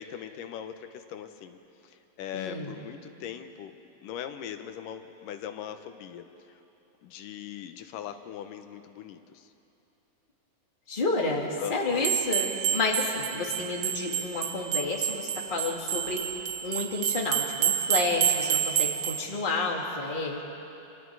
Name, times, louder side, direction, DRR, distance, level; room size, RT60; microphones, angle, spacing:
voice 1, 0.0-3.7 4.0-6.5 7.0-9.5 11.6-12.1 12.7-12.8, left 9 dB, 90° left, 8 dB, 2.6 m, -40 dB
voice 2, 2.3-2.7 10.9-16.2 16.6-20.4, left 3 dB, 15° left, -1 dB, 2.1 m, -30 dB
sound 1, 12.0-19.2, right 10 dB, 75° right, 1.2 m, -29 dB
29.5 x 26.0 x 4.8 m, 2.9 s
omnidirectional pair, 3.7 m